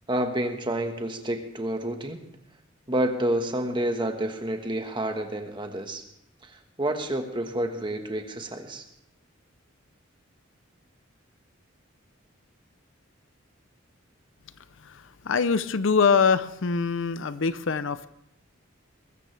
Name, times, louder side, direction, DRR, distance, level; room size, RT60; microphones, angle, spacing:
voice 1, 0.1-2.2 2.9-6.0 6.4-8.8, right 1 dB, 25° right, 5 dB, 1.4 m, -29 dB
voice 2, 14.8-18.1, left 5 dB, 70° left, 15 dB, 0.6 m, -24 dB
21.5 x 13.5 x 3.3 m, 0.78 s
head